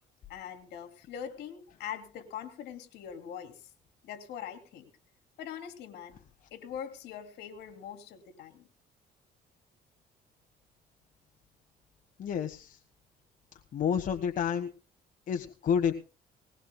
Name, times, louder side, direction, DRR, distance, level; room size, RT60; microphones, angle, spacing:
voice 1, 0.3-3.6 4.0-4.9 5.4-6.2 6.5-8.7, left 9 dB, 75° left, 7 dB, 3.1 m, -42 dB
voice 2, 12.2-12.8 13.7-14.7 15.3-15.9, left 7 dB, 50° left, 5 dB, 1.4 m, -29 dB
20.0 x 19.5 x 2.2 m, 0.36 s
cardioid pair, 110°, 17 cm